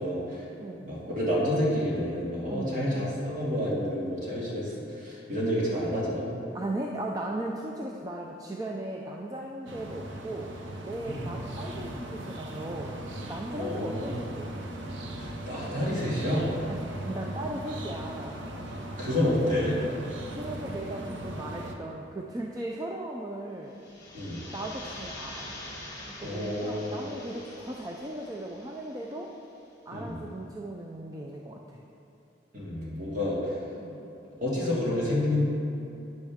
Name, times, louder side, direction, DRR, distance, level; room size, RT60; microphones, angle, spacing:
voice 1, 0.0-0.4 0.8-6.4 11.1-11.3 13.6-14.1 15.2-16.5 18.7-19.8 24.1-24.4 26.2-27.0 29.9-30.2 32.5-33.5 34.4-35.4, left 1 dB, 45° right, -6 dB, 2.4 m, -29 dB
voice 2, 0.6-0.9 2.5-2.9 6.5-13.0 13.3-14.6 16.7-18.4 20.3-23.8 24.5-25.5 26.0-29.3 29.9-31.8 33.8-34.1, right 1 dB, 20° right, -1 dB, 0.5 m, -37 dB
sound 1, 9.7-21.8, right 1 dB, 90° right, 0.9 m, -39 dB
sound 2, 23.7-29.3, left 1 dB, 20° left, 2.5 m, -44 dB
12.0 x 9.1 x 3.6 m, 2.7 s
head